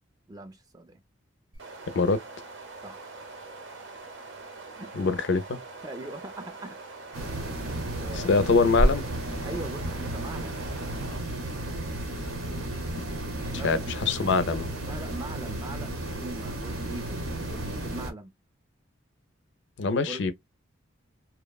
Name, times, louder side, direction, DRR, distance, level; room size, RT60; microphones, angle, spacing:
voice 1, 0.3-1.0 2.8-3.2 4.7-5.1 5.8-6.8 7.7-8.3 9.4-10.6 13.4-13.9 14.8-18.3 20.1-20.3, right 2 dB, 20° right, 0.3 m, -41 dB
sound 1, 1.5-11.2, right 3 dB, 70° right, 0.7 m, -44 dB
voice 2, 4.9-5.6 8.2-9.0 13.5-14.7 19.8-20.3, left 4 dB, 60° left, 0.4 m, -24 dB
sound 2, 7.1-18.1, right 1 dB, 90° right, 0.9 m, -32 dB
2.9 x 2.0 x 2.2 m
head